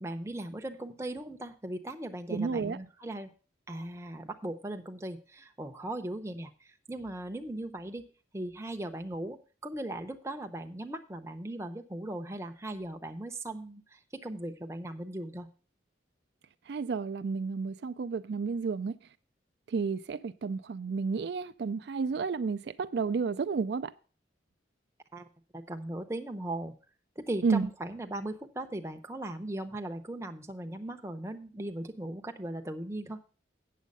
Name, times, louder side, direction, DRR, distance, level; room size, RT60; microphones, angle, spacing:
voice 1, 0.0-3.3 3.7-8.0 8.3-15.5 25.1-25.3 25.5-26.7 27.2-33.2, right 1 dB, 15° right, 0.6 m, -38 dB
voice 2, 2.3-2.8 16.7-18.9 19.7-23.9 27.4-27.7, right 5 dB, 65° right, 0.4 m, -31 dB
8.5 x 7.2 x 5.3 m
head